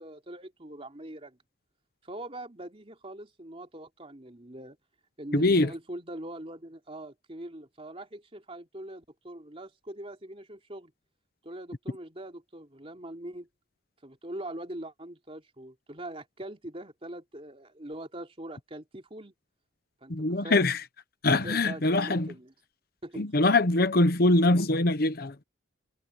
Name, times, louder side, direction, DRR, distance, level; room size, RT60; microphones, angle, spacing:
voice 1, 0.0-1.4 2.0-4.8 5.2-10.9 11.4-13.5 14.0-19.3 20.0-20.6 21.4-22.5 23.0-23.3, right 1 dB, 30° right, 3.1 m, -42 dB
voice 2, 5.3-5.7 20.1-20.8 21.2-22.3 23.2-25.4, left 2 dB, 50° left, 1.0 m, -23 dB
head